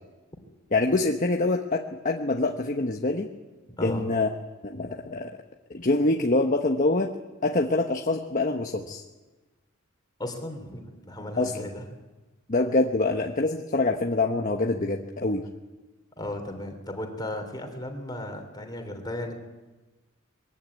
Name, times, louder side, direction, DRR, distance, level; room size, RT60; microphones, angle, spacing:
voice 1, 0.7-3.3 3.8-4.3 4.6-5.3 5.7-7.1 7.4-9.0 11.4-11.5 12.5-15.4, left 2 dB, 40° left, 3 dB, 1.2 m, -25 dB
voice 2, 3.8-4.1 10.2-11.8 16.2-19.4, left 1 dB, 20° left, 4 dB, 3.2 m, -35 dB
22.0 x 16.5 x 9.7 m, 1.2 s
head